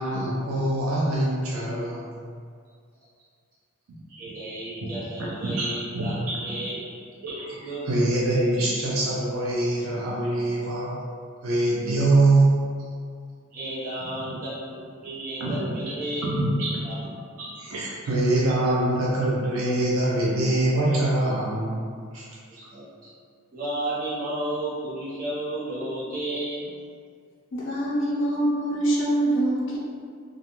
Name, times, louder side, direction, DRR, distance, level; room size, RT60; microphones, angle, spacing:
voice 1, 0.0-2.0 3.9-4.0 4.8-4.9 5.2-5.7 5.9-6.4 7.2-7.6 7.9-11.0 11.4-12.8 15.4-15.9 16.2-16.9 17.4-21.9 22.1-22.2, right 2 dB, 75° right, -5 dB, 0.4 m, -24 dB
voice 2, 4.1-7.8 13.5-16.3 16.8-17.1 22.5-23.1 23.5-26.7, right 1 dB, 40° right, -10 dB, 0.9 m, -33 dB
voice 3, 27.5-29.8, right 1 dB, 60° left, -5 dB, 0.7 m, -24 dB
2.4 x 2.3 x 2.9 m, 2.1 s
head